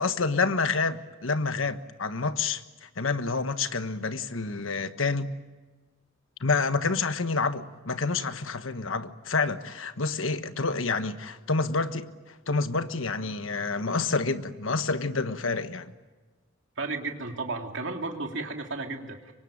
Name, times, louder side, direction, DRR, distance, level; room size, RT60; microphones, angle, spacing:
voice 1, 0.0-5.3 6.4-15.9, left 4 dB, 85° left, 1.3 m, -28 dB
voice 2, 16.8-19.3, right 3 dB, 65° right, 2.8 m, -33 dB
25.5 x 24.0 x 8.9 m
head